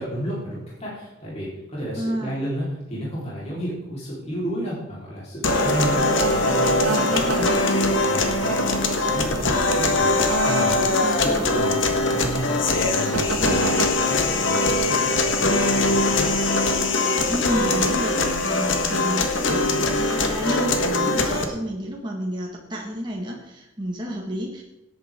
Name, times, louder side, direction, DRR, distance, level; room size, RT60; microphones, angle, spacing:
voice 1, 0.0-10.7 11.0-16.3, equal, 30° left, -7 dB, 4.1 m, -32 dB
voice 2, 2.0-2.4 7.1-7.6 11.0-11.5 17.3-24.6, equal, 20° right, -2 dB, 1.7 m, -30 dB
sound 1, 5.4-21.4, left 2 dB, 60° left, 1.5 m, -22 dB
sound 2, 5.5-13.9, right 4 dB, 80° right, 0.7 m, -32 dB
17.0 x 8.9 x 3.7 m, 0.96 s
head